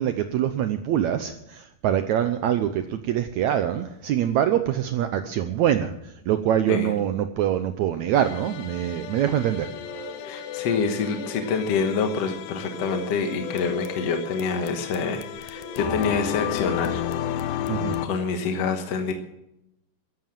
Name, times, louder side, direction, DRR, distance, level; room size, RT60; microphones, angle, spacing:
voice 1, 0.0-9.7 17.7-18.0, right 10 dB, 75° right, 9 dB, 1.8 m, -24 dB
sound 1, 8.1-18.1, left 11 dB, 85° left, 2.6 m, -34 dB
sound 2, 9.3-18.0, left 5 dB, 55° right, 7.5 m, -39 dB
voice 2, 10.2-17.0 18.0-19.1, left 5 dB, 60° left, 6 dB, 2.0 m, -26 dB
14.5 x 11.5 x 7.4 m, 0.84 s
omnidirectional pair, 4.0 m